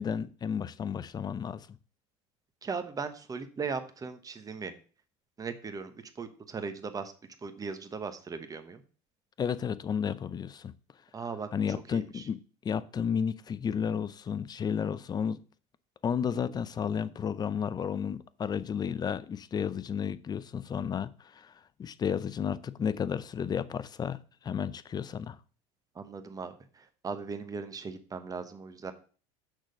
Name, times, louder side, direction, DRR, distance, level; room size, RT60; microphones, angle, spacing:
voice 1, 0.0-1.7 9.4-10.7 11.5-12.4 12.6-15.4 16.0-21.5 21.8-24.2 24.4-25.4, left 7 dB, 25° left, 0.5 m, -32 dB
voice 2, 2.6-4.7 5.4-7.1 7.4-8.8 11.1-11.5 11.9-12.3 25.9-28.9, right 5 dB, 25° right, 1.1 m, -38 dB
6.4 x 6.3 x 5.2 m
supercardioid pair, 105°, 15 cm